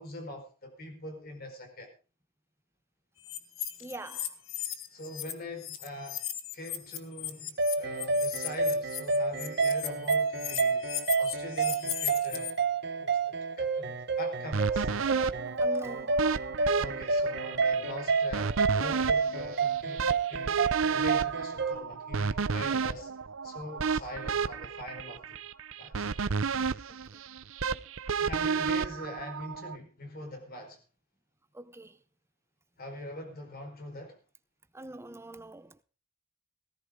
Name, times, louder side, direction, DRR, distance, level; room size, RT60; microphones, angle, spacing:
voice 1, 0.0-1.9 4.9-6.2 6.5-10.9 11.2-12.5 13.0-14.9 16.8-20.6 20.9-23.1 23.4-25.4 25.8-26.1 28.2-30.8 32.8-34.2, left 1 dB, 45° left, 4.8 m, -43 dB
sound 1, 3.2-5.3 5.6-12.5, left 11 dB, 75° left, 1.6 m, -37 dB
voice 2, 3.8-4.3 15.6-16.1 31.5-32.0 34.7-35.8, right 2 dB, 10° right, 0.7 m, -43 dB
sound 2, 7.6-21.7, right 4 dB, 55° right, 1.1 m, -29 dB
sound 3, 14.5-29.8, right 5 dB, 70° right, 0.7 m, -32 dB
17.5 x 14.5 x 3.8 m
head